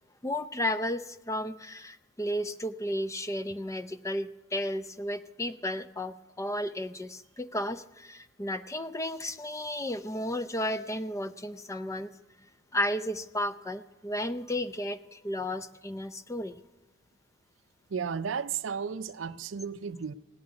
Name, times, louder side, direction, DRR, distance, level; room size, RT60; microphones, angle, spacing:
voice 1, 0.2-12.1 12.7-16.6, left 1 dB, 15° left, 0.5 m, -33 dB
voice 2, 17.9-20.1, right 6 dB, 65° right, 0.5 m, -33 dB
17.0 x 7.8 x 9.7 m
head